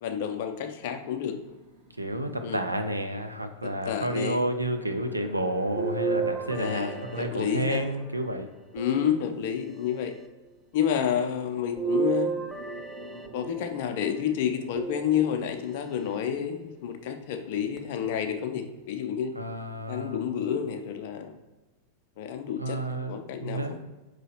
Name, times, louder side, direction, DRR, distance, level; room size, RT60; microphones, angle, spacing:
voice 1, 0.0-1.4 2.4-2.6 3.9-4.4 6.5-7.9 8.7-10.1 10.7-12.4 13.3-19.3 19.9-21.3 22.2-22.8 23.1-23.8, left 9 dB, 50° left, 6 dB, 0.5 m, -29 dB
sound 1, 1.2-9.5 10.3-10.4 10.6-20.9, right 1 dB, 55° right, 1.1 m, -52 dB
voice 2, 2.0-8.5 19.4-20.5 22.6-23.9, right 1 dB, 85° right, 6 dB, 0.4 m, -31 dB
sound 2, 5.8-8.0 8.8-9.8 11.8-13.8 14.8-15.6 16.3-16.4 17.8-17.9, right 5 dB, ahead, 0.5 m, -32 dB
4.9 x 3.1 x 2.8 m, 1.1 s
figure-of-eight pair, 90°, 0 cm